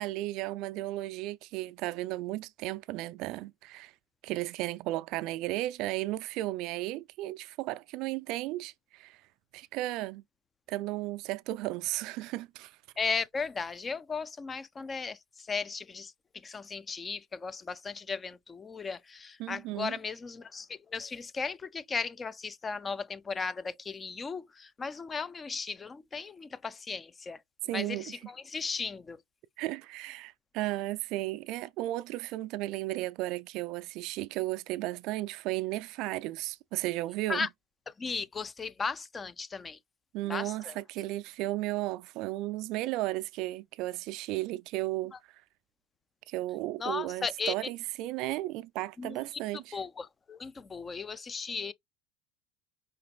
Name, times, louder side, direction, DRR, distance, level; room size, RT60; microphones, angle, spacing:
voice 1, 0.0-3.9 4.2-9.2 9.5-10.2 10.7-12.8 19.4-19.9 27.7-28.2 29.6-37.5 40.1-45.1 46.3-49.8, right 17 dB, 60° right, 0.3 m, -34 dB
voice 2, 13.0-29.2 37.3-37.5 37.9-39.8 40.3-40.8 45.1-45.2 46.8-47.5 49.0-49.4 49.7-51.7, left 5 dB, 20° left, 0.5 m, -36 dB
5.1 x 3.9 x 2.3 m
supercardioid pair, 105°, 0 cm